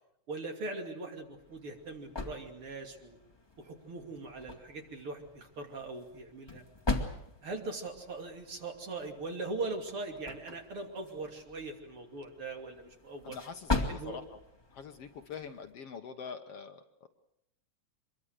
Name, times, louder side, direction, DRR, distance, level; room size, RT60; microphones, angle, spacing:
voice 1, 0.3-3.2 3.6-6.6 7.4-13.4 13.9-14.2, right 3 dB, 50° right, 3 dB, 3.5 m, -40 dB
sound 1, 1.2-15.7, left 3 dB, 10° left, 1.8 m, -41 dB
voice 2, 13.2-14.4 14.7-17.1, left 6 dB, 60° left, 6 dB, 2.1 m, -44 dB
25.5 x 22.5 x 6.6 m, 0.79 s
omnidirectional pair, 3.3 m